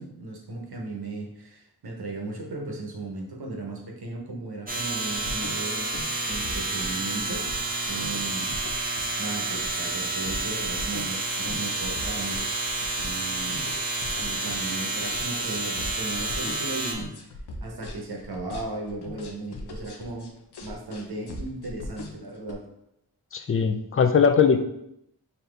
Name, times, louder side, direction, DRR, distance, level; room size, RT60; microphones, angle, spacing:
voice 1, 0.0-7.5 7.9-8.6 9.2-12.6 13.0-13.7 14.2-17.1 17.6-20.3 20.6-22.7, right 2 dB, 70° right, 1 dB, 0.9 m, -36 dB
sound 1, 4.7-16.9, right 2 dB, 20° right, 0.7 m, -30 dB
sound 2, 5.2-22.5, left 2 dB, 85° left, 0.6 m, -40 dB
voice 2, 23.3-24.6, left 6 dB, 35° left, 8 dB, 0.4 m, -20 dB
4.0 x 2.8 x 3.3 m, 0.80 s
wide cardioid pair, 70°, 39 cm